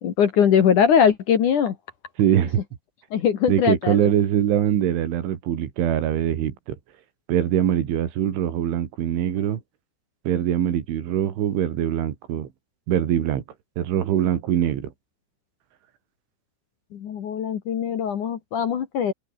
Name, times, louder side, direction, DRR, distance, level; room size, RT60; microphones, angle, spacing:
voice 1, 0.0-1.8 3.1-4.1 16.9-19.1, left 8 dB, 55° left, 2.5 m, -21 dB
voice 2, 2.2-2.6 3.5-6.8 7.3-9.6 10.3-12.5 12.9-13.4 13.8-14.9, right 10 dB, 85° right, 5.0 m, -23 dB
open air
omnidirectional pair, 5.3 m